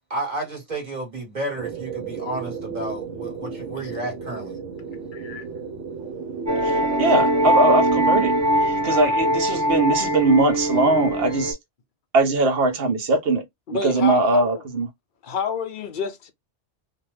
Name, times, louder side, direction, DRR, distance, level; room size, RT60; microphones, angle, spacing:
voice 1, 0.1-4.6, right 2 dB, 40° right, 1.5 m, -31 dB
sound 1, 1.6-8.4, right 8 dB, 80° right, 1.3 m, -31 dB
voice 2, 5.1-5.5 13.7-14.6 15.2-16.3, left 6 dB, 55° left, 0.6 m, -29 dB
sound 2, 6.5-11.5, equal, 20° right, 0.6 m, -22 dB
voice 3, 6.6-8.3 8.6-11.6 12.1-13.4 13.8-14.9, right 2 dB, 60° right, 1.0 m, -21 dB
2.7 x 2.2 x 3.1 m
omnidirectional pair, 1.2 m